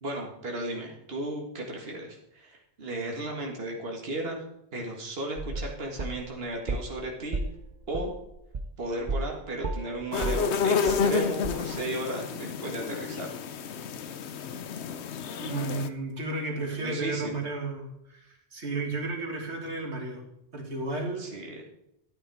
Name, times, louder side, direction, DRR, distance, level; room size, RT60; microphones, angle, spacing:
voice 1, 0.0-7.4 7.9-8.1 8.8-13.3 16.8-17.4 21.2-21.6, right 1 dB, 60° right, 0 dB, 2.0 m, -35 dB
sound 1, 5.4-7.0 7.3-9.4 9.6-11.2 11.4-11.5, right 2 dB, 45° right, 0.9 m, -33 dB
sound 2, 10.1-15.9, left 6 dB, 80° left, 1.0 m, -30 dB
voice 2, 15.4-20.2 20.5-21.3, right 2 dB, 90° right, 2 dB, 2.5 m, -33 dB
13.0 x 9.2 x 4.8 m, 0.81 s
omnidirectional pair, 1.1 m